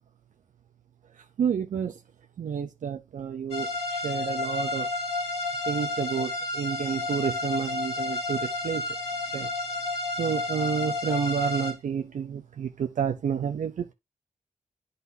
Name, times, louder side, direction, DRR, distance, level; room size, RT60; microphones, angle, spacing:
voice 1, 1.4-2.0 2.4-4.9 5.7-8.8 9.3-9.5 10.2-13.9, right 7 dB, 85° right, 0.6 m, -30 dB
sound 1, 3.5-11.7, left 2 dB, 55° left, 2.6 m, -31 dB
11.0 x 4.0 x 2.6 m
wide cardioid pair, 125°, 13 cm